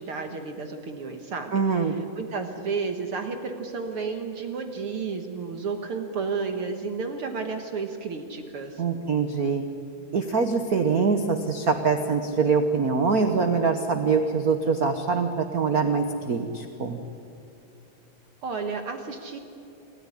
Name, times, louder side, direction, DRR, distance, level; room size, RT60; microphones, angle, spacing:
voice 1, 0.0-8.8 18.4-19.4, right 4 dB, 55° right, 6 dB, 1.9 m, -32 dB
voice 2, 1.5-2.0 8.8-9.6 10.1-17.0, right 5 dB, 85° right, 7 dB, 0.8 m, -24 dB
27.0 x 14.0 x 10.0 m, 2.9 s
omnidirectional pair, 3.4 m